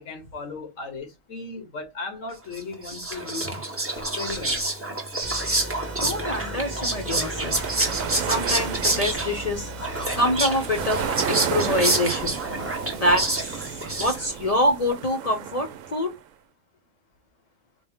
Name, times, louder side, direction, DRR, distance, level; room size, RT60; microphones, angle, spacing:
voice 1, 0.0-3.5 4.0-4.7, left 3 dB, 80° left, 1.6 m, -36 dB
Whispering, 2.5-14.5, right 2 dB, 15° right, 0.6 m, -28 dB
sound 1, 5.2-14.9, right 1 dB, 55° right, 0.5 m, -40 dB
voice 2, 6.0-7.6 8.2-9.7 10.1-11.0 11.3-12.4 12.9-16.1, left 1 dB, 35° left, 0.7 m, -25 dB
sound 2, 6.9-16.2, right 9 dB, 90° right, 1.0 m, -33 dB
4.3 x 2.1 x 3.5 m
omnidirectional pair, 1.3 m